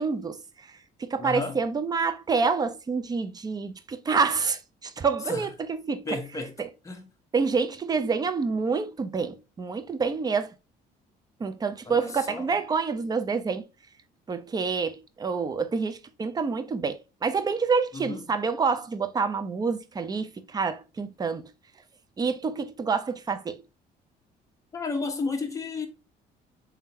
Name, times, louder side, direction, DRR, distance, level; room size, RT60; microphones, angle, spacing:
voice 1, 0.0-6.2 6.6-6.7 7.3-10.5 11.4-13.7 14.3-21.5 22.2-23.6, right 5 dB, 25° right, 0.5 m, -28 dB
voice 2, 1.2-1.6 5.3-5.5 6.1-6.6 6.8-7.0 11.9-12.5 17.9-18.2 24.7-25.9, left 3 dB, 20° left, 1.1 m, -32 dB
3.6 x 3.4 x 2.7 m
cardioid pair, 110°, 17 cm